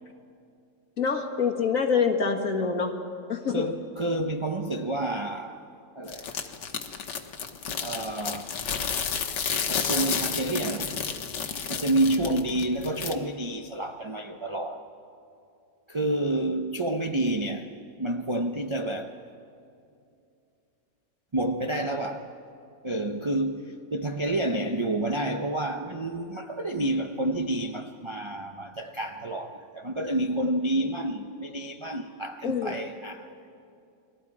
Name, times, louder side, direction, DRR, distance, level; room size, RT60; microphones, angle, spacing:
voice 1, 1.0-2.9 3.3-3.7 32.4-32.8, left 5 dB, 50° left, 2.1 m, -25 dB
voice 2, 3.5-5.7 5.9-6.5 7.8-8.6 9.4-11.0 11.7-14.9 15.9-19.2 21.3-22.4 22.8-33.3, right 1 dB, 35° right, 0.5 m, -29 dB
sound 1, 6.1-13.1, left 6 dB, 80° left, 1.8 m, -31 dB
30.0 x 22.0 x 4.9 m
omnidirectional pair, 1.9 m